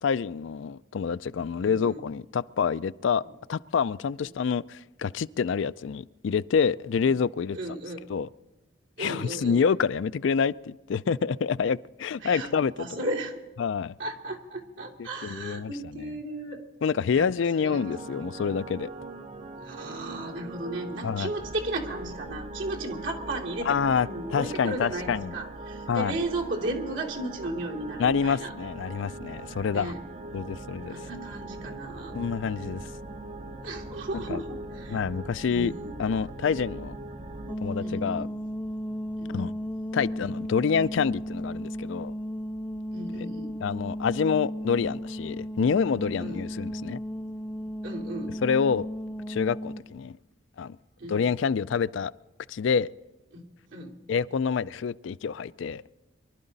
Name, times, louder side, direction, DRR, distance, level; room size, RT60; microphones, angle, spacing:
voice 1, 0.0-3.2 3.5-7.6 8.1-8.3 9.0-12.9 13.6-14.0 15.0-16.1 16.8-18.9 21.0-21.3 23.6-25.3 25.9-26.2 28.0-29.9 30.3-31.0 32.1-32.8 34.3-34.4 34.9-35.7 36.0-36.9 37.6-38.3 39.3-39.5 39.9-42.1 43.6-47.0 48.4-48.9 49.3-50.2 50.6-50.8 51.1-52.1 52.5-52.9 54.1-55.8, left 6 dB, 70° left, 0.4 m, -27 dB
voice 2, 1.6-2.0 7.1-7.2 7.5-8.1 9.0-9.6 12.2-12.5 12.8-13.4 14.0-16.6 17.1-17.2 17.5-17.8 18.1-18.2 19.6-28.5 29.7-30.0 30.9-32.2 33.6-35.0 35.5-36.0 37.8-38.3 39.2-39.4 42.9-43.6 46.2-46.4 47.8-48.3 51.0-51.2 53.3-53.4 53.7-54.0, right 2 dB, 70° right, 2.7 m, -35 dB
sound 1, 17.7-37.5, right 2 dB, 35° right, 0.6 m, -40 dB
sound 2, 37.5-49.8, equal, 5° left, 0.4 m, -35 dB
24.5 x 12.0 x 4.0 m
head